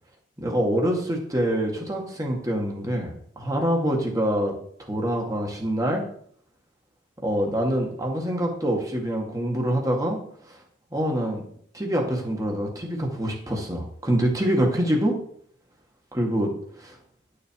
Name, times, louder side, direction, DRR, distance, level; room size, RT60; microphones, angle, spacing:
voice 1, 0.4-4.5 4.9-6.0 7.2-10.2 10.5-10.6 10.9-11.4 11.7-15.2 16.1-16.5 16.8-17.0, equal, 20° right, 1 dB, 2.1 m, -25 dB
11.0 x 6.8 x 4.8 m, 0.62 s
head